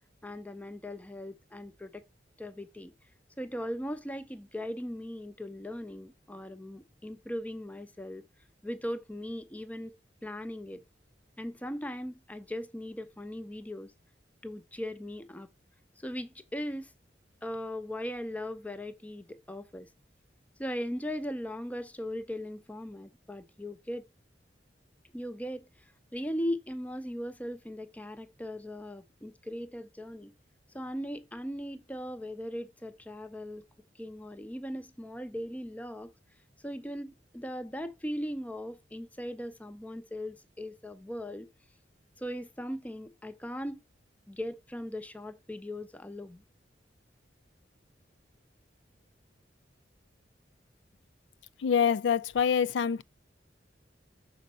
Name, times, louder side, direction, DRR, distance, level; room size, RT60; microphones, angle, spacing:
voice 1, 0.2-2.0 2.4-2.9 3.4-8.3 8.6-9.9 10.2-10.8 11.4-13.9 14.4-15.5 16.0-16.9 17.4-19.9 20.6-24.0 25.1-25.7 26.1-30.3 30.7-33.6 34.0-36.1 36.6-41.5 42.2-43.8 44.3-46.4, equal, 10° left, 0.5 m, -38 dB
voice 2, 51.6-53.0, left 7 dB, 85° left, 0.4 m, -25 dB
6.4 x 4.2 x 5.4 m
head